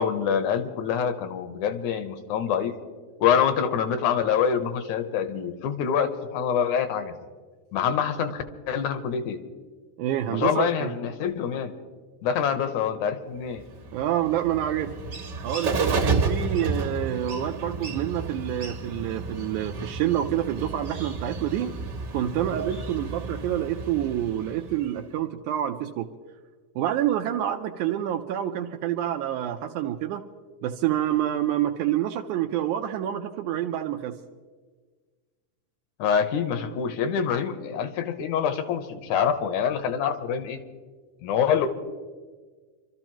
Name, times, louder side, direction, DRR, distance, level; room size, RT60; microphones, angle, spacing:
voice 1, 0.0-2.7 3.2-7.1 7.7-9.4 10.3-11.7 12.2-13.6 36.0-40.6 41.2-41.7, left 7 dB, 75° left, 8 dB, 2.2 m, -25 dB
voice 2, 10.0-10.9 13.9-14.9 15.4-21.7 22.1-26.1 26.8-30.2 30.6-34.2, right 11 dB, 80° right, 4 dB, 2.0 m, -27 dB
Bird, 13.6-25.0, right 3 dB, 50° right, 1.4 m, -31 dB
28.0 x 13.0 x 3.0 m, 1.5 s
omnidirectional pair, 3.6 m